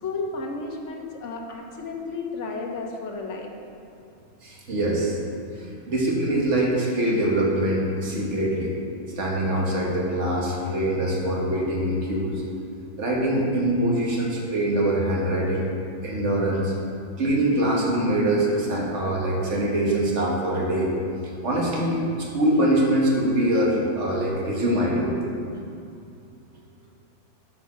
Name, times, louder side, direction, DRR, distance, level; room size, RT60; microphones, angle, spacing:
voice 1, 0.0-3.5, left 3 dB, 65° left, 1 dB, 1.2 m, -32 dB
voice 2, 4.4-5.2 5.6-8.7 9.2-12.4 13.0-15.6 16.0-16.7 17.2-20.9 21.4-25.4, right 1 dB, 60° right, -3 dB, 1.7 m, -23 dB
8.4 x 5.5 x 5.8 m, 2.5 s
omnidirectional pair, 1.4 m